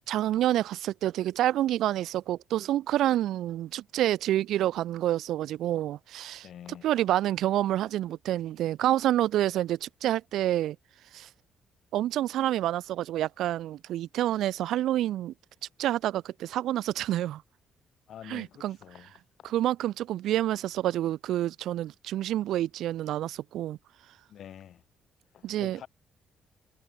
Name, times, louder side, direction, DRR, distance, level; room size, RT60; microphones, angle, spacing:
voice 1, 0.1-6.5 6.8-10.8 11.1-11.3 11.9-15.3 15.8-17.4 18.3-18.8 19.4-23.8 25.4-25.8, right 13 dB, 80° right, 3.1 m, -28 dB
voice 2, 6.4-6.9 18.1-19.1 19.4-19.5 24.3-24.8 25.3-25.9, left 10 dB, 70° left, 4.7 m, -46 dB
cardioid pair, 90°, 0 cm